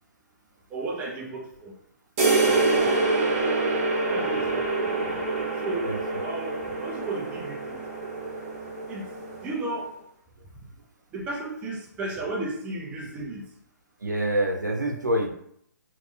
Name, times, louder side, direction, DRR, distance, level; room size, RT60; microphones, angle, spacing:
voice 1, 0.7-1.7 2.4-2.9 4.1-4.9 5.6-6.0 6.2-7.8 8.9-9.0 9.4-9.9 11.1-13.4, right 2 dB, 10° right, -2 dB, 0.4 m, -34 dB
sound 1, 2.2-9.7, right 3 dB, 40° right, 1.1 m, -26 dB
voice 2, 14.0-15.3, right 1 dB, 75° right, 1 dB, 0.8 m, -26 dB
3.5 x 3.1 x 2.2 m, 0.68 s
figure-of-eight pair, 135°, 10 cm